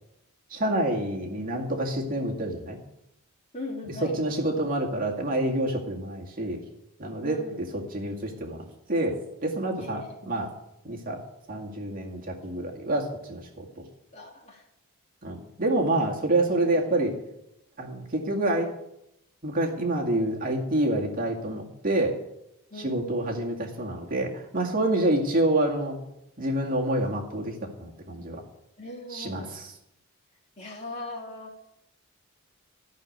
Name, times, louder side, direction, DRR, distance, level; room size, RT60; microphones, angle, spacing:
voice 1, 0.5-2.8 4.2-6.6 7.0-7.4 7.7-10.5 10.8-11.2 11.5-13.8 15.2-17.1 17.8-18.7 19.4-22.2 22.8-26.0 26.4-28.4 29.1-29.7, right 1 dB, 40° right, -1 dB, 2.1 m, -27 dB
voice 2, 3.5-4.2 7.2-7.6 9.8-10.4 14.1-14.7 15.9-16.1 16.6-16.8 22.7-23.0 28.8-29.6 30.6-31.7, left 2 dB, 30° left, -1 dB, 3.0 m, -39 dB
13.5 x 6.6 x 9.4 m, 0.83 s
head